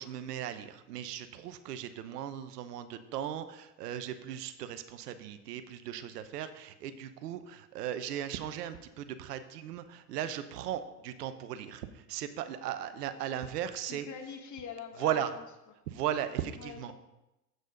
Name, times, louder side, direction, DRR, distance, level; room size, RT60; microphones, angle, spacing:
voice 1, 0.0-14.1 15.0-15.3 15.9-16.9, right 10 dB, 80° right, 11 dB, 0.9 m, -37 dB
voice 2, 13.8-15.4 16.5-16.9, left 7 dB, 35° left, 5 dB, 1.5 m, -44 dB
8.1 x 6.4 x 5.1 m, 0.96 s
hypercardioid pair, 95°, 47 cm